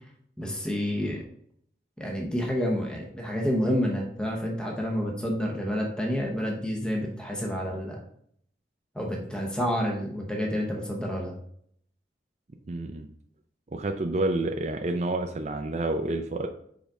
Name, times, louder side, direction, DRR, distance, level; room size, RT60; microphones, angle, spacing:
voice 1, 0.4-1.2 2.0-8.0 8.9-11.3, equal, 5° left, -1 dB, 0.9 m, -29 dB
voice 2, 12.7-13.1 13.7-16.5, right 2 dB, 40° right, 4 dB, 0.4 m, -29 dB
5.2 x 4.9 x 3.7 m, 0.66 s
head